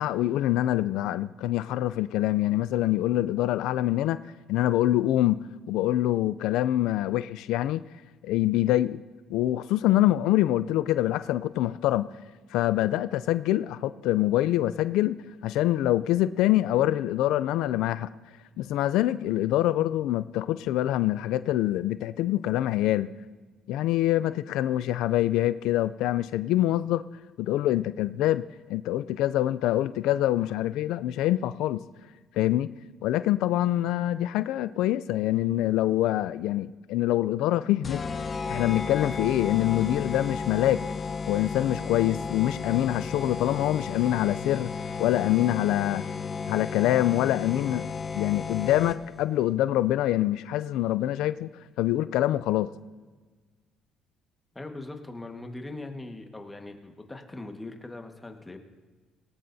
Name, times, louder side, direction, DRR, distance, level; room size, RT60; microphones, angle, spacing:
voice 1, 0.0-4.2 4.5-7.8 8.2-9.0 9.3-12.1 12.5-15.2 15.4-18.1 18.6-23.1 23.7-27.0 27.4-28.4 28.7-31.8 32.4-32.7 33.0-38.0 38.5-40.8 41.3-44.7 45.0-46.1 46.5-47.9 48.1-51.5 51.8-52.7, left 14 dB, 85° left, 0.3 m, -25 dB
sound 1, 37.8-49.2, left 5 dB, 30° left, 0.8 m, -34 dB
voice 2, 54.5-58.6, left 2 dB, 15° left, 1.5 m, -40 dB
18.0 x 18.0 x 2.7 m
cardioid pair, 115°, 0 cm